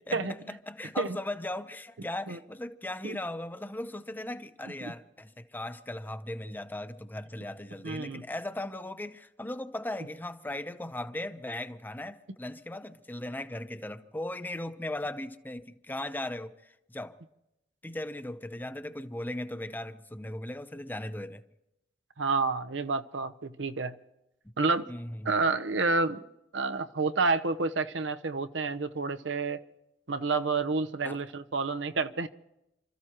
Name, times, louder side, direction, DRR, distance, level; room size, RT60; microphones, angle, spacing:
voice 1, 0.0-17.2 17.8-21.4 24.9-25.4 31.0-31.2, left 1 dB, 10° left, 0.7 m, -38 dB
voice 2, 7.8-8.2 22.2-23.9 24.6-24.9 25.2-26.2 26.5-29.6 30.1-32.3, right 3 dB, 80° right, 0.8 m, -29 dB
29.5 x 14.0 x 3.0 m
head